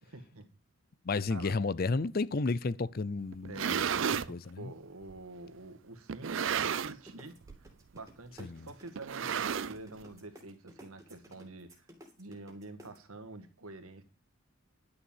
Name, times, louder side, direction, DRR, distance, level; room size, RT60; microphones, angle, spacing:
voice 1, 0.0-0.5 1.3-1.6 3.4-7.3 7.9-11.9 12.2-14.0, right 2 dB, 90° right, 1.8 m, -47 dB
voice 2, 1.0-3.8 4.3-4.7 8.4-8.7, left 3 dB, 45° left, 0.5 m, -32 dB
sound 1, 3.3-4.3 5.1-5.2 6.1-7.1 7.4-7.7 8.0-8.1 9.0-10.0, right 7 dB, 60° right, 0.5 m, -32 dB
sound 2, 7.1-13.0, equal, 15° right, 2.7 m, -53 dB
11.0 x 6.7 x 7.3 m
head